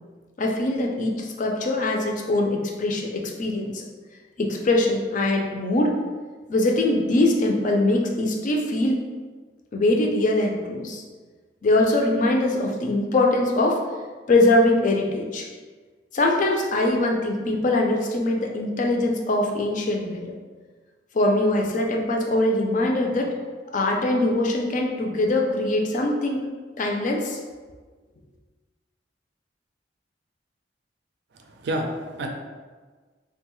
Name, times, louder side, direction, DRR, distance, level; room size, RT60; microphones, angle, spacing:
voice 1, 0.4-3.8 4.4-6.0 6.5-9.1 9.7-11.0 11.6-13.8 14.3-15.5 16.1-20.3 21.1-23.3 23.7-26.5 26.8-27.4, left 2 dB, 45° left, 1 dB, 0.4 m, -22 dB
voice 2, 31.3-32.3, right 1 dB, 65° right, 2 dB, 0.4 m, -29 dB
3.8 x 2.2 x 3.0 m, 1.4 s
head